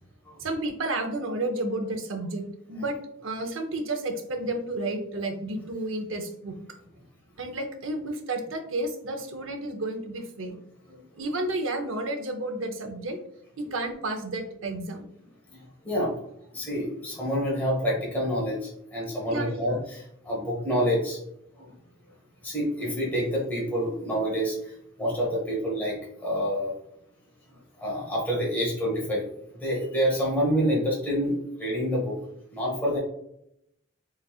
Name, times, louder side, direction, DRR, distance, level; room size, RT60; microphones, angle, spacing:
voice 1, 0.4-2.4 2.7-3.0 3.2-6.6 7.4-10.6 11.2-13.2 13.6-15.1 19.3-19.8, right 2 dB, 75° right, 6 dB, 0.7 m, -31 dB
voice 2, 15.5-16.2 16.5-21.2 21.5-21.7 22.4-26.8 27.8-29.2 29.6-32.2 32.5-33.0, equal, 10° left, -6 dB, 1.1 m, -28 dB
4.0 x 3.9 x 2.3 m, 0.75 s
head